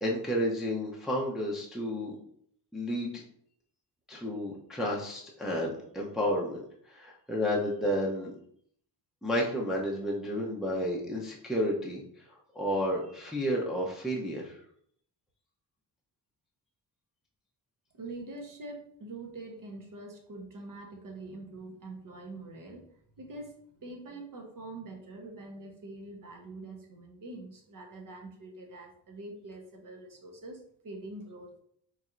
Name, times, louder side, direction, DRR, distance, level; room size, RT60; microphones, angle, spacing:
voice 1, 0.0-2.1 2.7-3.2 4.1-6.6 6.9-8.3 9.2-12.0 12.3-14.6, equal, ahead, -3 dB, 0.7 m, -31 dB
voice 2, 17.9-22.9 23.2-31.6, right 2 dB, 50° right, 2 dB, 1.0 m, -44 dB
4.2 x 3.2 x 2.5 m, 0.66 s
cardioid pair, 90°, 42 cm